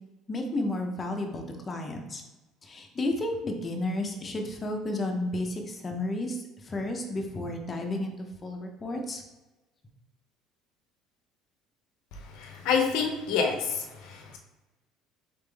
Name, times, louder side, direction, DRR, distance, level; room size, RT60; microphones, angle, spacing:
voice 1, 0.3-2.2 2.6-9.2, left 1 dB, 25° left, 2 dB, 0.8 m, -32 dB
voice 2, 12.3-14.4, left 5 dB, 80° left, 3 dB, 0.8 m, -28 dB
4.2 x 3.6 x 3.4 m, 1.1 s
cardioid pair, 120°, 0 cm